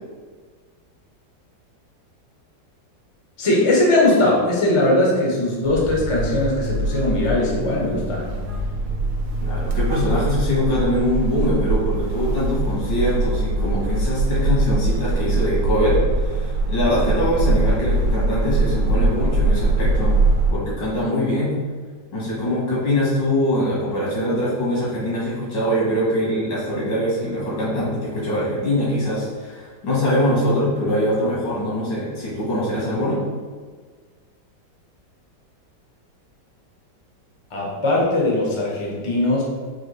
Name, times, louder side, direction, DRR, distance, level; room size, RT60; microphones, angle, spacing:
voice 1, 3.4-8.3 37.5-39.4, left 1 dB, 45° left, -3 dB, 0.4 m, -20 dB
sound 1, 5.6-20.5, right 2 dB, 80° right, 1.3 m, -22 dB
voice 2, 9.4-20.2 20.5-21.5 22.1-33.2, left 1 dB, 85° left, -7 dB, 2.3 m, -23 dB
4.7 x 2.7 x 3.2 m, 1.5 s
omnidirectional pair, 1.9 m